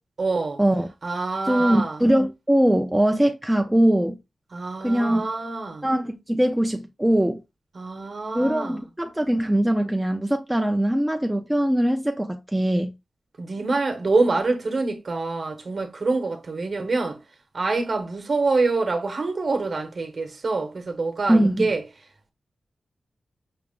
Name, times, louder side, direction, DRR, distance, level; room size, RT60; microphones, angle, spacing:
voice 1, 0.2-0.6 1.0-2.0 4.5-5.9 7.7-8.8 13.4-17.2 17.5-21.8, right 3 dB, 45° right, 0.9 m, -26 dB
voice 2, 1.5-4.2 4.8-5.3 5.8-7.4 8.3-12.9 21.3-21.7, right 1 dB, 5° right, 0.4 m, -21 dB
5.8 x 2.1 x 3.5 m
wide cardioid pair, 180°, 0 cm